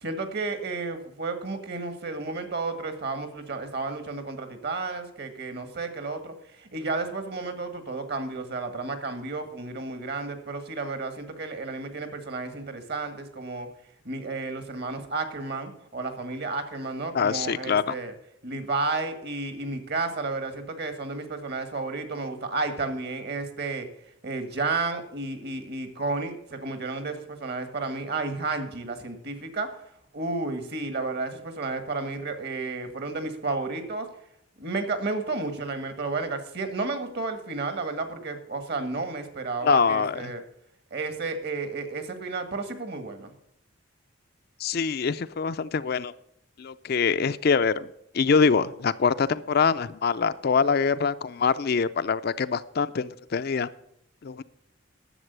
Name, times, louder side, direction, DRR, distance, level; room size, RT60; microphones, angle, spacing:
voice 1, 0.0-6.3 6.7-13.7 14.0-18.1 18.4-23.9 24.2-29.7 30.1-34.0 34.6-40.4 40.9-43.3, right 3 dB, 55° right, 8 dB, 1.7 m, -32 dB
voice 2, 17.1-17.9 39.6-40.3 44.6-46.1 46.6-47.9 48.1-53.7 54.2-54.4, left 5 dB, 50° left, 13 dB, 0.4 m, -24 dB
11.0 x 7.5 x 8.0 m, 0.76 s
head